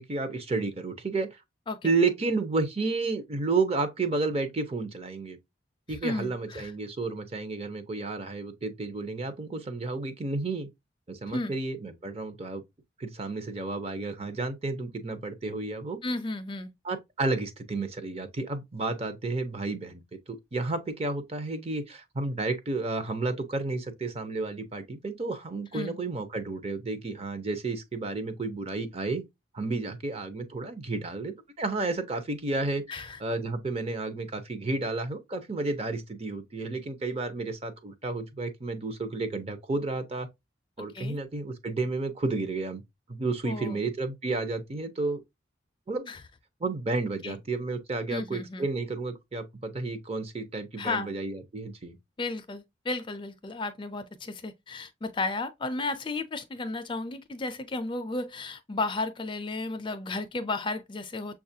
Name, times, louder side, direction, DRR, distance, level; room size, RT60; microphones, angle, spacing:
voice 1, 0.0-1.4 1.8-5.4 5.9-10.7 11.1-12.6 13.0-16.0 16.8-20.0 20.3-29.2 29.5-32.8 33.2-40.3 40.8-42.8 43.1-45.2 45.9-46.1 46.6-52.0, right 3 dB, 30° right, 0.6 m, -31 dB
voice 2, 5.9-6.7 11.3-11.5 16.0-16.7 25.7-25.9 32.9-33.2 40.9-41.2 43.5-43.8 46.1-46.2 47.2-47.4 48.1-48.7 50.8-51.1 52.2-61.3, left 3 dB, 25° left, 0.4 m, -33 dB
6.5 x 2.4 x 2.7 m
head